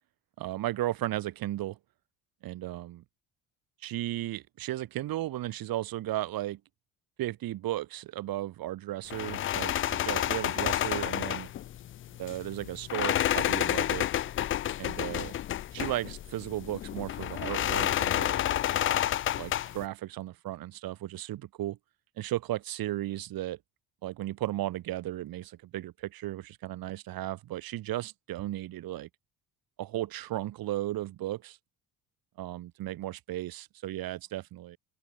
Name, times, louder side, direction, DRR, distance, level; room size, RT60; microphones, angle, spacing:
voice 1, 0.4-1.8 2.4-3.0 3.8-6.6 7.2-11.5 12.2-14.1 14.8-15.3 15.7-18.5 19.4-21.8 22.2-23.6 24.0-29.1 29.8-31.6 32.4-34.8, right 15 dB, 65° right, 3.7 m, -35 dB
sound 1, 9.1-19.9, left 12 dB, 35° left, 0.4 m, -30 dB
open air
cardioid pair, 165°, 38 cm